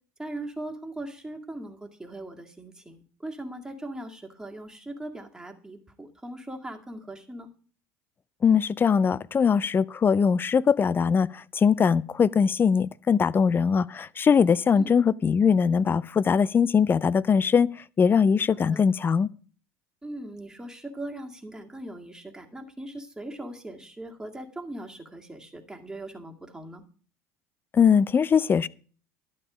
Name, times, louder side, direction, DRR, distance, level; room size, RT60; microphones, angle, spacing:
voice 1, 0.2-7.5 14.8-14.9 18.7-18.9 20.0-26.8, right 1 dB, 10° right, 2.1 m, -39 dB
voice 2, 8.4-11.3 11.6-17.7 18.0-19.3 27.7-28.7, left 6 dB, 30° left, 0.5 m, -21 dB
12.0 x 8.6 x 5.0 m
hypercardioid pair, 85°, 8 cm